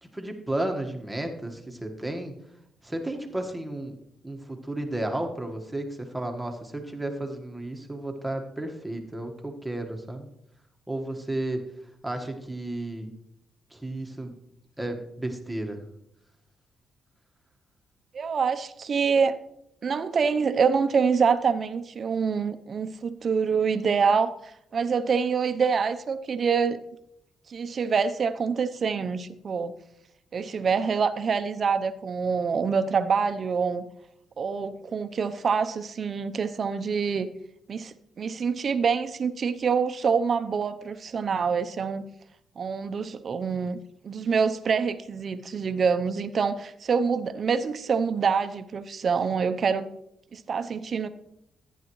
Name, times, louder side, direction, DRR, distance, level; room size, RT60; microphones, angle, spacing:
voice 1, 0.0-2.4 2.8-3.9 4.2-10.3 10.9-11.6 12.0-13.1 13.7-14.3 14.8-15.8, right 1 dB, 10° right, 3 dB, 1.5 m, -33 dB
voice 2, 18.1-19.3 19.8-24.3 24.7-26.8 27.5-29.7 30.3-33.9 34.4-37.3 37.7-42.1 42.6-43.8 44.0-49.9 50.3-51.1, right 5 dB, 50° right, 11 dB, 0.7 m, -26 dB
14.0 x 9.9 x 3.1 m, 0.78 s
cardioid pair, 95°, 0 cm